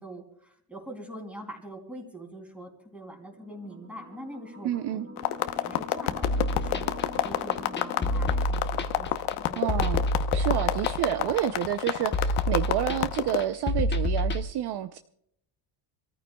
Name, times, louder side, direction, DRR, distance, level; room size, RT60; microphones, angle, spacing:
voice 1, 0.0-5.2 5.6-9.8, right 1 dB, 5° right, 2 dB, 3.0 m, -44 dB
sound 1, 3.2-8.4, left 2 dB, 35° right, 1.8 m, -44 dB
voice 2, 4.6-5.1 9.6-15.0, right 11 dB, 55° right, 9 dB, 0.6 m, -29 dB
sound 2, 5.2-13.4, left 14 dB, 80° left, 1.0 m, -29 dB
sound 3, 6.2-14.4, left 1 dB, 20° left, 0.9 m, -28 dB
27.5 x 14.0 x 2.3 m, 0.70 s
cardioid pair, 150°, 48 cm